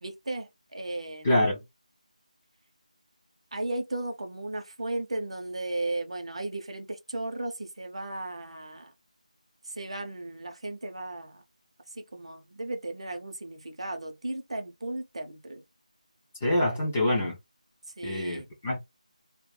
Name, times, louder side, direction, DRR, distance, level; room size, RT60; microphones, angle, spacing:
voice 1, 0.0-1.3 3.5-8.9 9.7-11.4 12.0-15.6 18.0-18.5, right 2 dB, 50° right, 0.5 m, -35 dB
voice 2, 1.2-1.6 16.4-17.4 18.0-18.8, left 1 dB, 10° left, 0.4 m, -25 dB
2.2 x 2.1 x 3.0 m
figure-of-eight pair, 175°, 4 cm